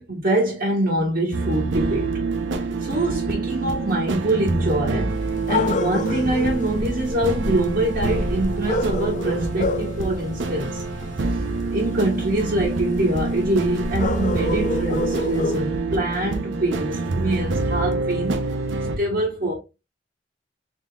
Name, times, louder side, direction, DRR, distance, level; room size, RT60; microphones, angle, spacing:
voice 1, 0.0-2.2 2.8-5.2 5.5-10.8 11.7-18.4 19.0-19.5, right 1 dB, 55° right, 1.1 m, -24 dB
sound 1, 1.3-19.0, right 3 dB, 90° right, 0.6 m, -26 dB
sound 2, 5.1-15.6, left 3 dB, 40° left, 0.4 m, -30 dB
3.8 x 3.6 x 2.3 m
head